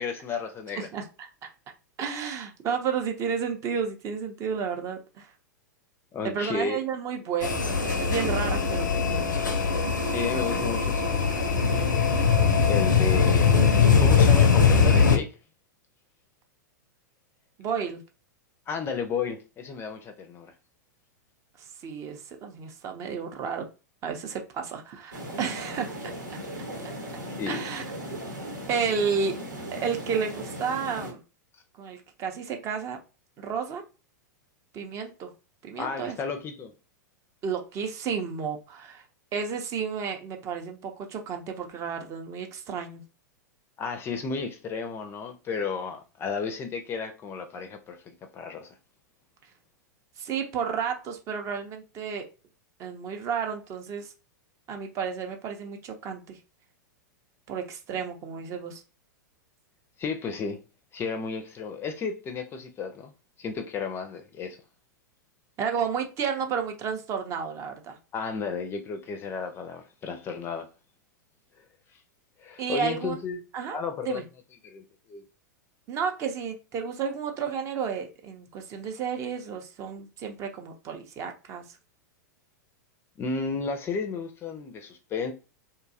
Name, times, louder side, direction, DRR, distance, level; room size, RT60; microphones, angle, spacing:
voice 1, 0.0-0.9 6.1-6.8 10.1-11.9 12.7-13.7 14.0-15.3 18.7-20.5 27.3-27.6 35.8-36.7 43.8-48.7 60.0-60.6 60.9-63.1 63.4-64.6 68.1-70.7 72.4-73.4 73.7-74.2 74.6-74.8 75.1-75.2 83.2-85.3, left 5 dB, 25° left, 0.4 m, -33 dB
voice 2, 0.7-1.5 2.0-5.3 6.2-9.4 17.6-18.0 21.6-23.7 24.0-26.1 27.5-27.8 28.7-29.4 29.7-31.2 31.8-33.0 33.4-33.8 34.7-35.3 35.6-36.2 37.4-39.0 39.3-43.0 50.2-52.3 52.8-54.1 54.7-56.4 57.5-58.8 65.6-68.0 72.6-73.2 73.5-73.8 74.0-74.2 75.9-81.8, right 6 dB, 30° right, 0.5 m, -32 dB
sound 1, 7.4-15.2, left 5 dB, 80° left, 0.5 m, -21 dB
sound 2, 25.1-31.1, equal, 85° right, 1.1 m, -37 dB
2.7 x 2.3 x 2.6 m
figure-of-eight pair, 100°, 10 cm